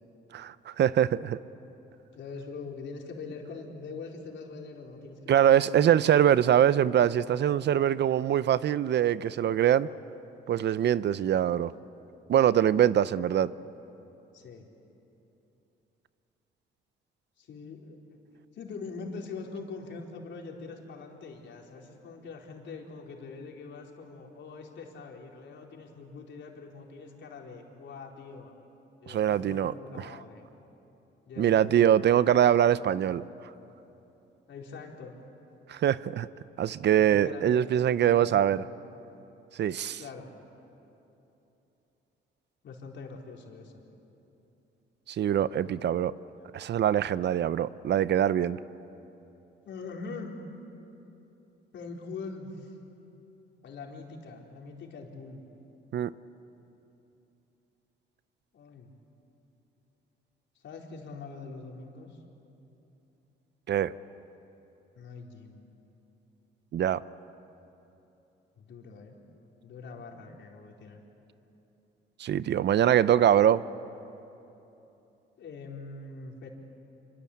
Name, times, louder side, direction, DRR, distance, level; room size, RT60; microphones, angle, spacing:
voice 1, 0.3-1.4 5.3-9.9 10.5-11.7 12.3-13.5 29.1-30.1 31.4-33.2 35.7-36.3 36.6-38.6 39.6-40.0 45.1-46.1 46.5-48.6 55.9-56.1 63.7-63.9 66.7-67.0 72.2-73.6, right 10 dB, 60° right, 0.7 m, -23 dB
voice 2, 2.1-5.9 9.7-10.0 14.3-14.7 17.4-18.0 18.5-28.5 29.0-30.4 31.3-32.4 32.9-33.2 34.5-35.2 37.0-38.6 40.0-40.3 42.6-43.8 46.2-46.5 49.6-50.4 51.7-52.8 53.6-55.4 58.5-58.9 60.6-62.2 64.9-65.6 68.6-69.2 69.6-71.0 75.4-76.5, left 4 dB, 65° left, 4.3 m, -43 dB
26.5 x 26.0 x 8.6 m
cardioid pair, 90°, 20 cm